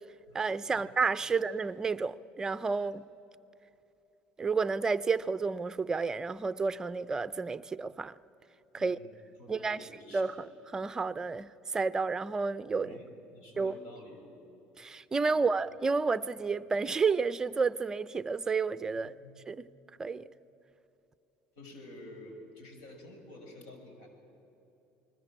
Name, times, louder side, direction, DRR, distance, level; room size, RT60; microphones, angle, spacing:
voice 1, 0.3-3.0 4.4-8.1 8.7-9.0 9.5-9.8 10.1-10.5 10.7-13.0 13.6-13.8 14.8-19.2 19.5-19.7 20.0-20.3, right 4 dB, 15° right, 0.5 m, -31 dB
voice 2, 8.8-10.5 12.8-14.2 15.3-15.4 18.9-19.3 21.5-24.1, left 1 dB, 85° left, 6.2 m, -50 dB
28.5 x 20.5 x 7.5 m
cardioid pair, 155°, 4 cm